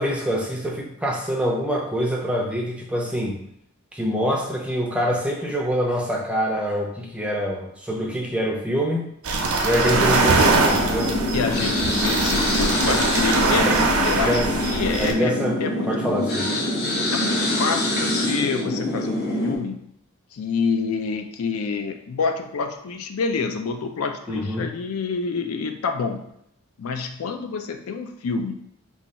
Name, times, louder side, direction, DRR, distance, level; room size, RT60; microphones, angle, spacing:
voice 1, 0.0-3.4 3.9-9.1 9.6-11.2 13.6-13.8 14.3-14.5 15.0-16.5 24.3-24.7, equal, 5° right, 0 dB, 0.4 m, -25 dB
sound 1, 9.2-15.1, right 3 dB, 80° right, 0.5 m, -22 dB
sound 2, 9.9-19.6, left 1 dB, 45° left, 0.8 m, -25 dB
voice 2, 11.3-13.7 14.0-15.3 15.6-16.0 17.1-19.8 20.3-26.3 26.8-28.6, left 5 dB, 75° left, 6 dB, 0.4 m, -27 dB
3.1 x 2.3 x 4.0 m, 0.74 s
head